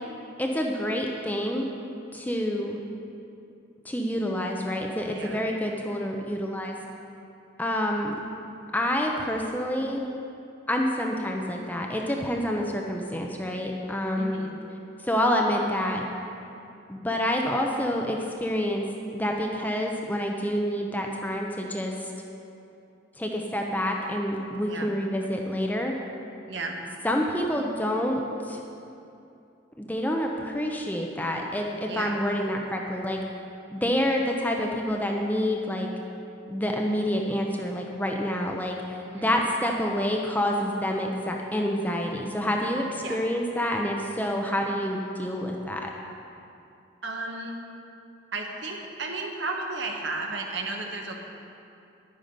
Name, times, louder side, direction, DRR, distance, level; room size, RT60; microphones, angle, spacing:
voice 1, 0.4-1.7 2.1-2.8 3.8-6.8 7.6-8.1 8.7-10.0 10.7-14.4 15.0-16.0 16.9-18.8 19.1-22.1 23.2-25.9 27.0-28.6 29.8-33.2 33.7-35.9 36.5-45.9, equal, 10° left, 1 dB, 0.7 m, -28 dB
voice 2, 14.2-14.6 24.7-24.9 26.5-26.8 31.9-32.2 39.0-39.4 43.0-43.2 47.0-47.6 48.3-51.2, right 3 dB, 60° right, 1 dB, 1.3 m, -34 dB
10.5 x 9.2 x 5.3 m, 2.7 s
head